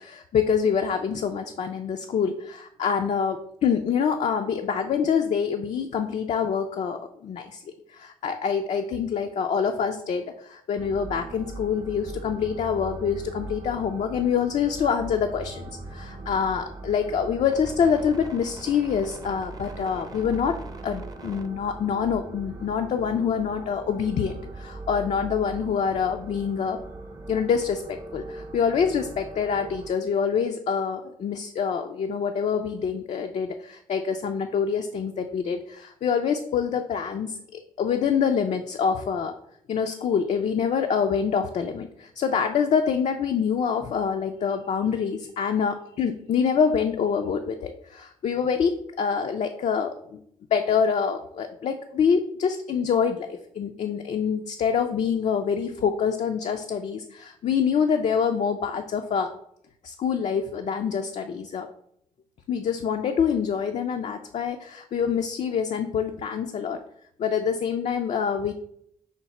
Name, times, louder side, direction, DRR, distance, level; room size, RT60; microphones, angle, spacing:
voice 1, 0.0-7.6 7.9-20.6 20.8-26.8 27.3-39.3 39.7-50.2 50.5-59.3 59.8-61.7 62.5-66.8 67.2-68.5, left 6 dB, 55° left, 5 dB, 0.4 m, -26 dB
sound 1, 10.8-29.9, right 2 dB, 25° right, 0.6 m, -40 dB
5.7 x 2.1 x 4.1 m, 0.72 s
cardioid pair, 70°, 14 cm